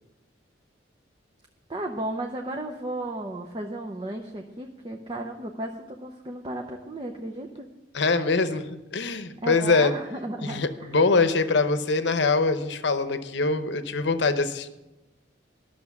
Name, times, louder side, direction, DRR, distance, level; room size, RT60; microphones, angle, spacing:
voice 1, 1.7-7.7 9.4-11.0, right 1 dB, 25° right, 2 dB, 0.6 m, -34 dB
voice 2, 7.9-9.9 10.4-14.7, left 3 dB, 65° left, 11 dB, 0.8 m, -23 dB
12.0 x 6.4 x 7.1 m, 0.99 s
head